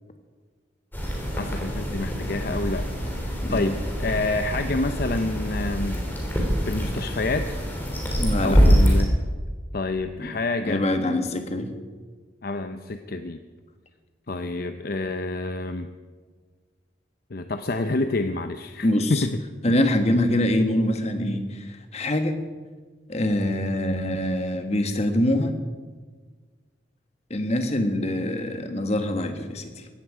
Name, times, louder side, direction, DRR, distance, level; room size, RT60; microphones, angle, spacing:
sound 1, 0.9-9.0, equal, 10° left, 3.4 m, -24 dB
voice 1, 1.3-2.8 3.1-6.0 6.6-7.5 8.4-9.1 9.7-10.8 12.4-13.4 14.3-15.9 17.3-19.3 19.7-19.8, left 2 dB, 55° left, 8 dB, 0.7 m, -28 dB
voice 2, 8.2-8.6 10.2-10.3 10.6-11.7 18.8-19.3 19.6-22.4 23.1-25.5 27.3-29.9, left 1 dB, 35° left, 7 dB, 1.6 m, -24 dB
17.0 x 14.5 x 5.0 m, 1.5 s
head